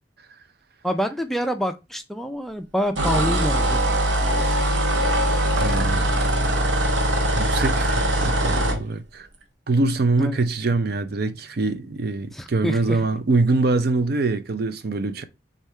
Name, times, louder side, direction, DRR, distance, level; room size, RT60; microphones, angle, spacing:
voice 1, 0.8-3.8 6.4-6.6 10.2-10.4 12.3-13.1, equal, ahead, 0.4 m, -27 dB
sound 1, 3.0-8.8, right 1 dB, 80° right, 1.0 m, -21 dB
voice 2, 5.6-6.1 7.3-9.3 9.7-15.2, right 3 dB, 55° right, 0.5 m, -24 dB
3.6 x 3.5 x 4.2 m
head